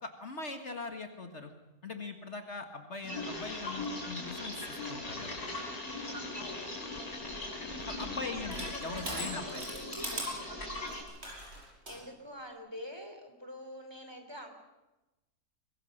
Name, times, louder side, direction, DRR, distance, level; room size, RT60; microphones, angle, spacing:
voice 1, 0.0-1.5 1.8-5.4 7.8-8.6 8.8-9.6, left 3 dB, 50° left, 6 dB, 1.9 m, -41 dB
sound 1, 3.0-11.0, left 2 dB, 85° left, 5.5 m, -40 dB
sound 2, 3.2-8.7, left 3 dB, 25° left, 1.3 m, -46 dB
voice 2, 6.0-6.7 8.2-10.6 11.9-14.5, left 1 dB, 15° right, 5 dB, 3.1 m, -46 dB
Crushing, 7.1-12.0, right 1 dB, 45° right, 6.5 m, -42 dB
23.0 x 22.0 x 6.5 m, 1.0 s
omnidirectional pair, 1.6 m